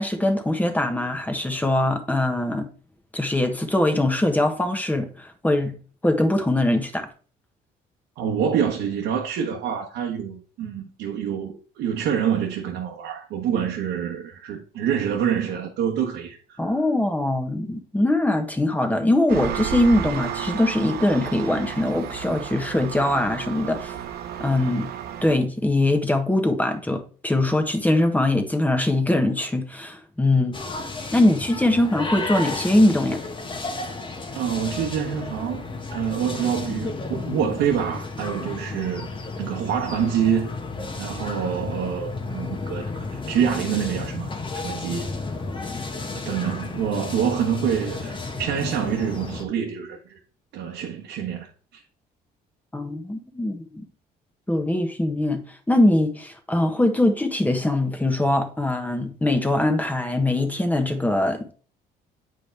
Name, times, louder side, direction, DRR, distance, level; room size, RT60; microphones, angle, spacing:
voice 1, 0.0-2.7 3.1-5.7 6.0-7.1 16.6-24.0 24.4-24.9 25.2-30.6 31.1-33.2 52.7-53.8 54.5-55.4 55.7-61.5, left 1 dB, 10° left, 1.3 m, -22 dB
voice 2, 8.2-16.7 34.3-39.1 39.4-40.5 41.0-45.1 46.1-50.2 50.5-51.8, right 8 dB, 85° right, 1.2 m, -26 dB
Engine, 19.3-25.3, right 9 dB, 70° right, 0.9 m, -32 dB
sound 1, 30.5-49.4, left 3 dB, 30° left, 1.2 m, -33 dB
8.5 x 5.0 x 3.3 m
cardioid pair, 110°, 17 cm